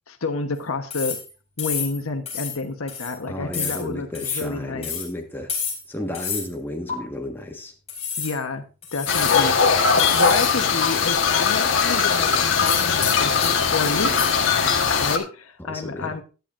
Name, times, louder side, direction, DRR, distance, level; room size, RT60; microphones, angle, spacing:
voice 1, 0.1-1.2 1.6-4.9 8.2-8.6 8.9-14.2 15.0-16.2, left 3 dB, 75° left, 7 dB, 1.2 m, -29 dB
sound 1, 0.9-1.3 1.6-2.0 2.3-2.6 2.9-3.1 3.5-3.8 4.1-4.5 4.8-5.1 5.5-5.9 6.1-6.5 6.9-7.0 7.9-8.4 8.8-9.5 10.0-10.5 10.8-10.9 12.7-14.3, left 6 dB, 30° left, 4.0 m, -29 dB
voice 2, 3.3-5.5 5.9-7.7 15.7-16.1, left 1 dB, 10° left, 2 dB, 1.5 m, -33 dB
sound 2, 9.1-15.2, left 5 dB, 60° left, 1.4 m, -20 dB
16.0 x 10.5 x 2.6 m, 0.34 s
head